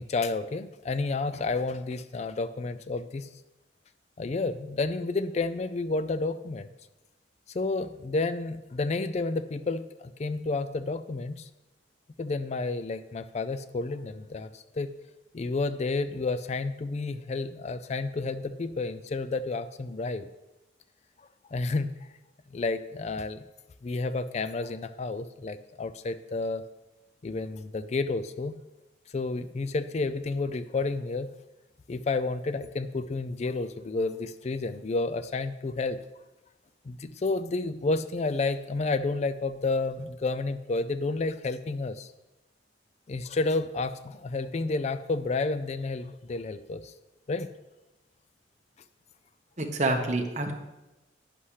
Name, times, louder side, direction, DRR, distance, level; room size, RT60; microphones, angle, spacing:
voice 1, 0.0-3.3 4.2-6.7 7.5-11.5 12.2-14.9 15.3-20.3 21.2-22.1 22.5-23.4 23.8-26.6 27.2-28.5 29.1-31.3 31.9-36.0 36.8-42.1 43.1-46.9 47.3-47.5, left 3 dB, 35° left, 12 dB, 0.4 m, -30 dB
voice 2, 49.6-50.5, right 2 dB, 40° right, 4 dB, 1.1 m, -27 dB
11.0 x 10.0 x 3.3 m, 1.0 s
head